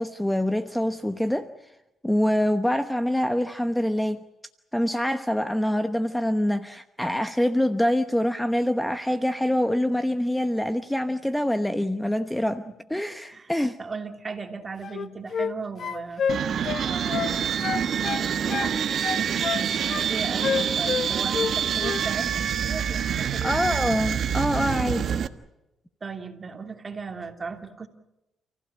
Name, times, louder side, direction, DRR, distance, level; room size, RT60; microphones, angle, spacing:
voice 1, 0.0-1.5 2.0-4.2 4.7-12.6 12.9-13.8 23.4-25.2, left 1 dB, 5° left, 1.0 m, -25 dB
voice 2, 13.3-16.2 16.8-23.9 26.0-27.9, right 4 dB, 30° right, 2.8 m, -37 dB
sound 1, 14.8-15.5 15.8-17.3 17.6-18.7 19.0-20.1 20.4-21.5 21.8-22.0, left 7 dB, 55° left, 1.2 m, -28 dB
sound 2, 16.3-25.3, right 8 dB, 60° right, 1.3 m, -26 dB
30.0 x 15.5 x 8.5 m
cardioid pair, 90°, 0 cm